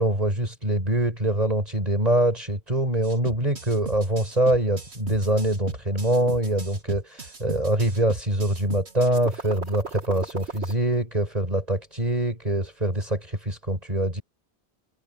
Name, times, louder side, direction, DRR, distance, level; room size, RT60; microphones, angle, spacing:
voice 1, 0.0-14.2, right 1 dB, 35° right, 5.6 m, -24 dB
sound 1, 3.0-10.7, right 4 dB, 75° right, 2.4 m, -37 dB
omnidirectional pair, 1.1 m